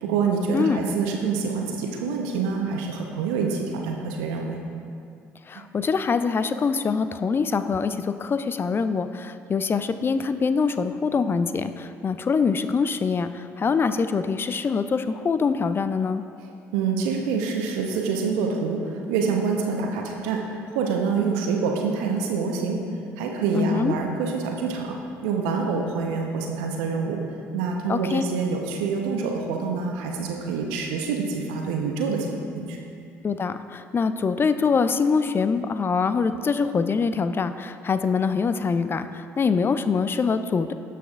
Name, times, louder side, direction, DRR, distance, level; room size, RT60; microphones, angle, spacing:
voice 1, 0.0-4.6 16.7-22.8 23.2-25.0 25.2-27.2 27.5-32.3 32.6-32.8, right 5 dB, 75° right, 1 dB, 0.8 m, -26 dB
voice 2, 5.5-16.2 23.5-23.9 27.9-28.2 33.2-40.7, left 5 dB, 30° left, 11 dB, 0.4 m, -24 dB
12.5 x 5.7 x 2.4 m, 2.4 s
hypercardioid pair, 55°, 7 cm